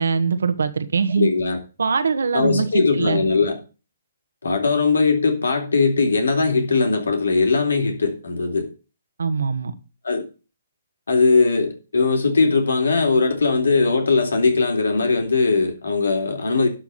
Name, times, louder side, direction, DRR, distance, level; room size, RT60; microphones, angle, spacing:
voice 1, 0.0-1.3 1.8-3.2 9.2-9.7, right 5 dB, 80° right, 1.5 m, -22 dB
voice 2, 1.2-1.6 2.3-3.6 4.4-8.7 10.0-10.3 11.1-16.7, left 4 dB, 85° left, 3.5 m, -19 dB
11.5 x 4.8 x 8.1 m
hypercardioid pair, 145°, 0 cm